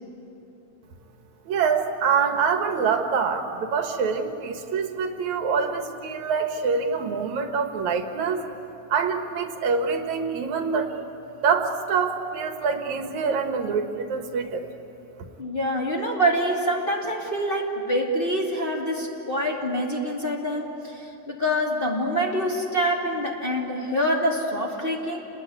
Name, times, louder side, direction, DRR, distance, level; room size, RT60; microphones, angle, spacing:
voice 1, 1.5-8.5 8.9-11.1 11.4-14.7, right 5 dB, 75° right, 5 dB, 2.8 m, -25 dB
voice 2, 15.4-25.2, equal, 20° left, -3 dB, 2.6 m, -26 dB
29.0 x 20.5 x 9.6 m, 3.0 s
omnidirectional pair, 3.3 m